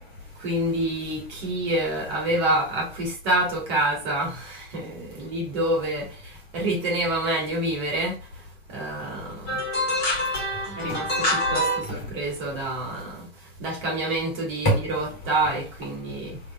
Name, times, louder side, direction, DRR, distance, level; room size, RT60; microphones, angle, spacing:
voice 1, 0.4-9.6 10.7-16.4, right 1 dB, 35° right, 1.6 m, -27 dB
voice 2, 9.5-11.8 14.7-14.8, equal, 30° left, 1.8 m, -24 dB
3.5 x 3.0 x 2.3 m
figure-of-eight pair, 105°, 32 cm